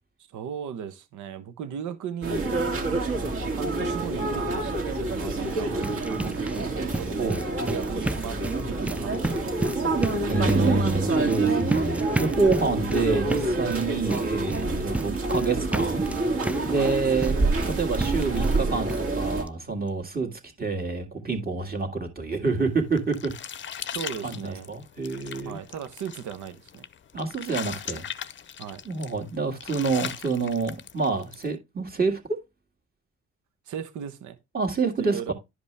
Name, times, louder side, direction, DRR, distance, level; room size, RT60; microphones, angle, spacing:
voice 1, 0.2-2.5 2.9-3.0 3.6-7.4 7.7-9.8 16.7-16.9 23.9-24.7 25.4-26.8 28.6-28.8 33.7-34.4 35.0-35.3, right 8 dB, 75° right, 1.0 m, -37 dB
sound 1, 2.2-19.4, right 2 dB, 45° right, 2.2 m, -27 dB
sound 2, 5.4-18.6 18.9-19.0 19.5-19.6 19.9-20.0, right 2 dB, 5° right, 0.4 m, -34 dB
voice 2, 10.3-16.4 16.6-17.3 17.7-23.3 24.2-25.6 27.1-28.1 28.8-32.2 34.5-35.3, right 4 dB, 30° right, 2.1 m, -27 dB
sound 3, 22.6-31.5, left 8 dB, 40° left, 0.6 m, -39 dB
11.0 x 5.2 x 3.3 m
cardioid pair, 90°, 30 cm